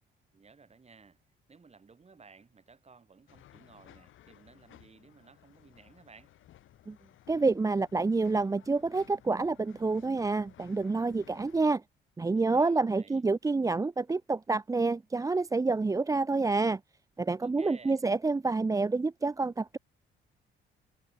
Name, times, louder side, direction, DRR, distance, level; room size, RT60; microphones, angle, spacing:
voice 1, 0.3-1.2 1.5-6.3 12.2-13.2 17.4-18.0, right 4 dB, 30° right, 5.9 m, -56 dB
sound 1, 3.3-11.7, left 13 dB, 80° left, 5.8 m, -58 dB
voice 2, 7.3-11.8 12.2-16.8 17.2-19.8, right 3 dB, 15° right, 0.5 m, -28 dB
cardioid pair, 90°, 20 cm